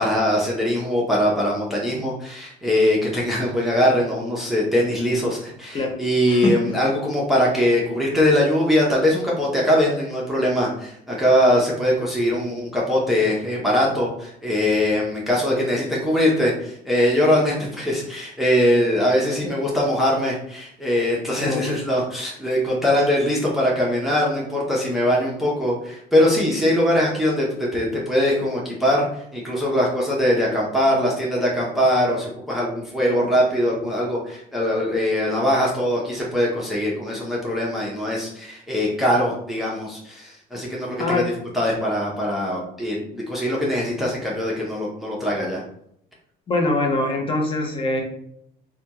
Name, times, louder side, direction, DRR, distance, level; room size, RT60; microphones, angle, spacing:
voice 1, 0.0-41.2 41.5-45.6, left 1 dB, ahead, -4 dB, 0.7 m, -21 dB
voice 2, 6.3-6.7 21.4-21.7 26.9-27.0 33.1-33.3 41.0-41.3 46.5-48.0, left 2 dB, 30° left, 2 dB, 0.8 m, -23 dB
3.3 x 2.3 x 2.8 m, 0.72 s
cardioid pair, 110°, 17 cm